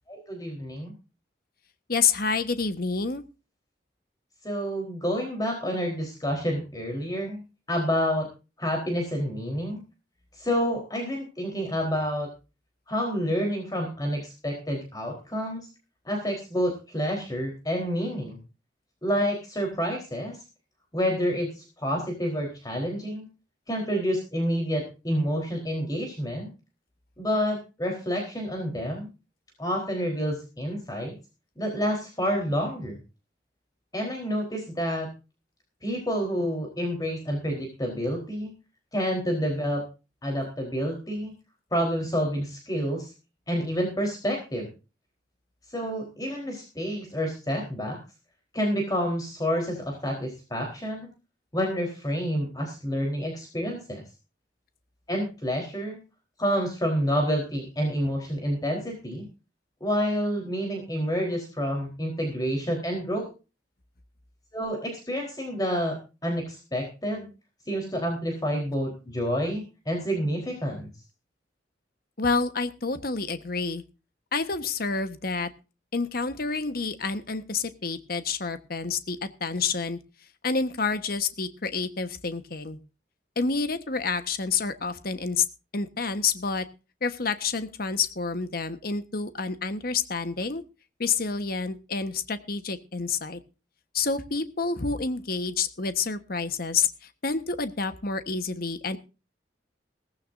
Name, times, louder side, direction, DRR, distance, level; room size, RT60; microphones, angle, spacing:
voice 1, 0.1-0.9 4.4-7.4 7.7-8.3 8.6-9.8 10.3-12.3 12.9-15.7 16.1-18.4 19.0-20.4 20.9-23.3 23.7-26.5 27.2-29.1 29.6-31.2 31.6-33.0 33.9-35.1 35.8-38.5 38.9-39.8 40.2-41.3 41.7-43.1 43.5-44.7 45.7-48.0 48.5-51.1 51.5-54.0 55.1-56.0 56.4-59.3 59.8-63.2 64.5-67.3 67.7-70.9, equal, 20° left, 1 dB, 4.0 m, -28 dB
voice 2, 1.9-3.2 72.2-73.8 74.3-75.5 75.9-80.0 80.4-82.8 83.4-85.4 85.7-86.6 87.0-90.6 91.0-93.4 93.9-99.0, left 4 dB, 55° left, 10 dB, 1.3 m, -28 dB
17.5 x 15.5 x 2.7 m, 0.32 s
head